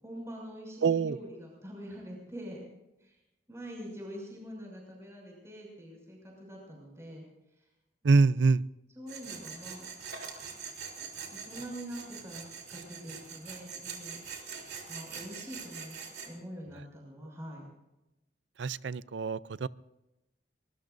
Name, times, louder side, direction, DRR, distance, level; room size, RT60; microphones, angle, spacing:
voice 1, 0.0-2.7 3.0-3.2 3.5-7.3 8.9-9.9 11.3-14.2 14.9-16.0 16.2-17.7, equal, 15° right, -2 dB, 6.2 m, -44 dB
voice 2, 0.8-1.2 8.0-8.6 18.6-19.7, right 4 dB, 90° right, 18 dB, 0.5 m, -25 dB
Tools, 9.1-16.3, right 6 dB, 65° right, 3.5 m, -43 dB
24.0 x 21.0 x 2.7 m, 0.94 s
head